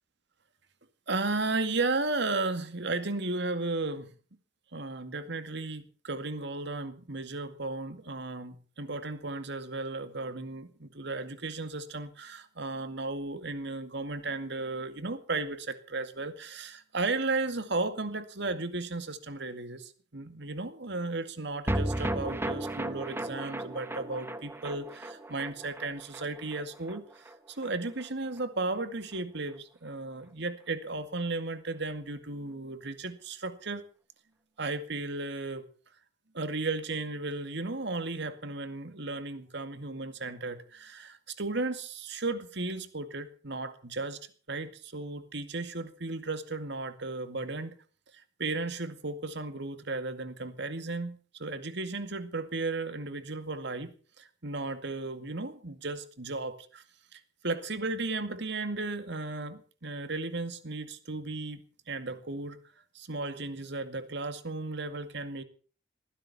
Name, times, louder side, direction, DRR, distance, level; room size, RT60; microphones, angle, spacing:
voice 1, 1.1-4.1 4.7-33.8 34.6-35.7 36.3-44.2 44.5-47.7 48.4-56.8 57.1-61.6 61.9-62.6 62.9-65.4, right 3 dB, 65° right, 10 dB, 2.2 m, -35 dB
sound 1, 21.7-28.1 28.4-28.5 28.7-28.8, right 1 dB, 10° right, 1.3 m, -35 dB
21.0 x 16.0 x 4.3 m, 0.40 s
head